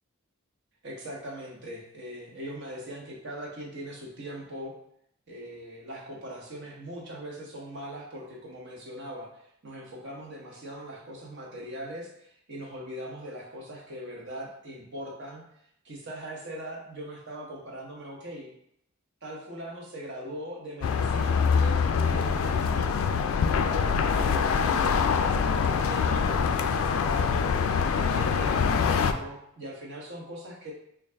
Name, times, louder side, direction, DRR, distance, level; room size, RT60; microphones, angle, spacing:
voice 1, 0.8-4.7 5.3-9.3 9.6-15.4 15.8-18.5 19.2-30.7, equal, 60° right, -2 dB, 1.0 m, -40 dB
sound 1, 20.8-29.1, left 6 dB, 80° left, 0.3 m, -24 dB
3.8 x 2.4 x 3.3 m, 0.73 s
head